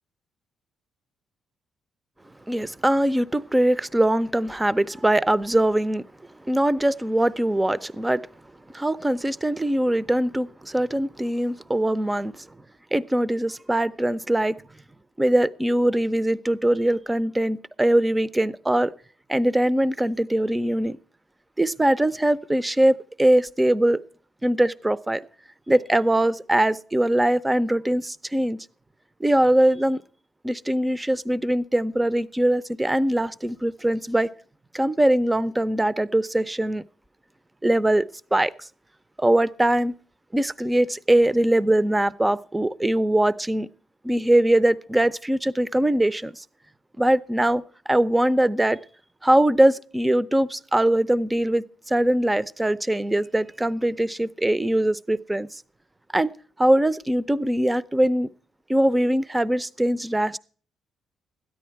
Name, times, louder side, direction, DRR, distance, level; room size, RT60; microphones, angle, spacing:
voice 1, 2.5-6.0 6.5-8.2 8.7-12.5 12.9-14.6 15.2-18.9 19.3-21.0 21.6-24.0 24.4-25.2 25.7-28.7 29.2-30.0 30.4-34.3 34.7-36.8 37.6-38.0 38.3-38.7 39.2-39.9 40.3-43.7 44.0-46.4 47.0-47.6 47.9-48.8 49.2-55.6 56.1-56.3 56.6-58.3 58.7-60.4, right 1 dB, 15° right, 0.6 m, -22 dB
13.0 x 10.0 x 4.6 m
cardioid pair, 75°, 0 cm